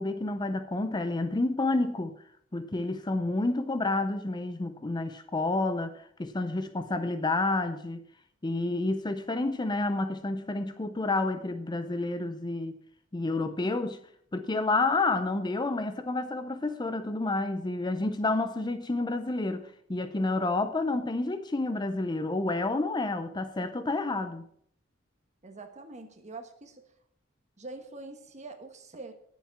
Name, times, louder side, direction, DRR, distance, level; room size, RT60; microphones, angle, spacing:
voice 1, 0.0-2.2 2.5-8.0 8.4-12.8 13.1-14.0 14.3-24.4, left 2 dB, 20° left, 0.5 m, -29 dB
voice 2, 25.4-26.9 27.6-29.1, right 3 dB, 35° right, 1.3 m, -44 dB
9.6 x 7.3 x 5.8 m
head